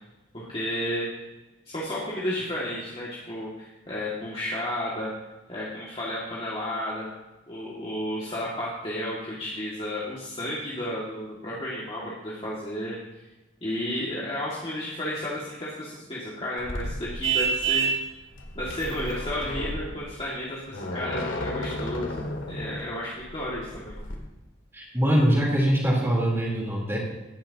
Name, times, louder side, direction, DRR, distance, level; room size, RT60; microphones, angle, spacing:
voice 1, 0.3-1.1 1.7-5.1 5.5-7.1 7.5-13.0 13.6-17.9 18.6-24.0, left 1 dB, 30° left, -6 dB, 2.0 m, -32 dB
sound 1, 16.6-24.2, left 1 dB, 75° left, 1.9 m, -35 dB
Vehicle horn car horn honking, 17.2-18.0, right 6 dB, 85° right, 1.4 m, -24 dB
voice 2, 24.7-27.0, equal, 15° right, -3 dB, 3.5 m, -23 dB
17.5 x 10.5 x 2.9 m, 1.1 s
head